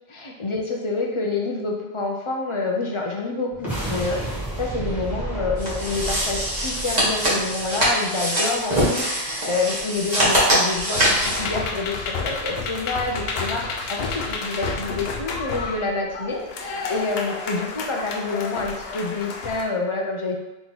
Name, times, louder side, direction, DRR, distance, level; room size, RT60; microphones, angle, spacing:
voice 1, 0.1-20.4, left 3 dB, 40° left, 0 dB, 0.5 m, -28 dB
sound 1, 3.5-8.0, right 1 dB, ahead, 1.3 m, -31 dB
sound 2, 5.6-11.4, equal, 40° right, 1.5 m, -23 dB
sound 3, 10.9-19.6, left 3 dB, 75° left, 0.8 m, -30 dB
3.5 x 3.0 x 4.0 m, 1.0 s
omnidirectional pair, 1.1 m